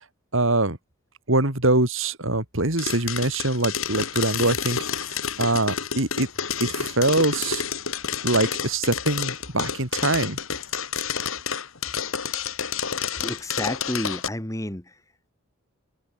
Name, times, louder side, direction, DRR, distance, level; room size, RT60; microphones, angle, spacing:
voice 1, 0.3-0.8 1.3-4.8 5.1-6.3 6.6-7.6 8.2-10.4, right 2 dB, 70° right, 4.0 m, -23 dB
sound 1, 2.8-14.3, left 7 dB, 85° left, 2.9 m, -29 dB
voice 2, 13.2-14.9, left 1 dB, 15° left, 1.6 m, -31 dB
head